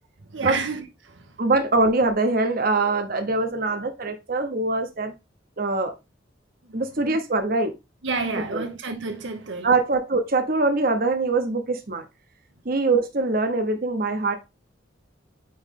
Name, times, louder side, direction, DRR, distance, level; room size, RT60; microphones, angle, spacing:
voice 1, 0.3-1.4 6.7-6.9 8.0-9.7, right 4 dB, 75° right, 0.9 m, -30 dB
voice 2, 1.4-5.1 5.6-5.9 6.7-7.7 8.3-8.6 9.6-12.0 12.6-14.4, right 3 dB, 50° right, 1.0 m, -23 dB
8.7 x 3.2 x 3.7 m
head